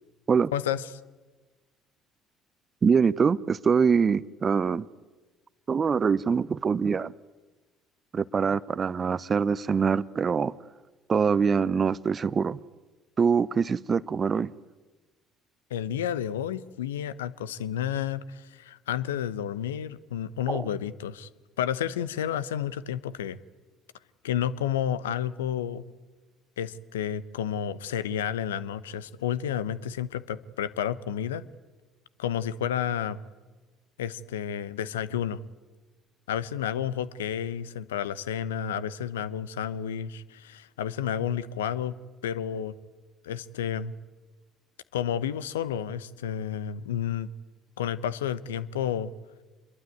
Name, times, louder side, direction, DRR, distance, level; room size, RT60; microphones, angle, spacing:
voice 1, 0.5-0.9 15.7-21.3 21.6-23.4 24.2-25.8 26.6-31.4 32.2-33.2 34.0-35.4 36.3-42.0 42.2-42.7 43.2-43.9 44.9-47.3 47.8-49.1, left 9 dB, 80° left, 0.9 m, -31 dB
voice 2, 2.8-4.8 5.7-7.1 8.1-10.5 11.1-12.6 13.2-14.5 20.5-20.7, right 6 dB, 35° right, 0.8 m, -24 dB
26.5 x 22.5 x 9.2 m
hypercardioid pair, 55°, 0 cm